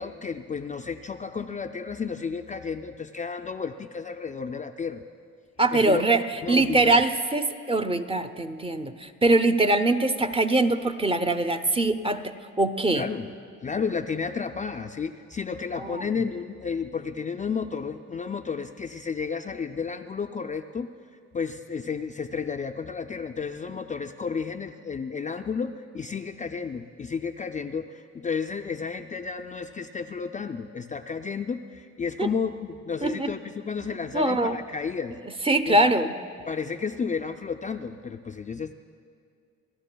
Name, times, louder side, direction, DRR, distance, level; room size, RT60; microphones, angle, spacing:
voice 1, 0.0-5.0 5.7-7.0 12.9-13.3 13.6-20.9 21.3-35.1 35.7-35.8 36.5-38.7, left 5 dB, 25° left, 6 dB, 0.4 m, -32 dB
voice 2, 5.6-13.1 15.8-16.0 32.2-32.3 33.0-33.3 34.1-34.6 35.5-36.1, right 2 dB, 20° right, 9 dB, 0.6 m, -23 dB
28.0 x 12.5 x 2.2 m, 2.4 s
cardioid pair, 90°, 30 cm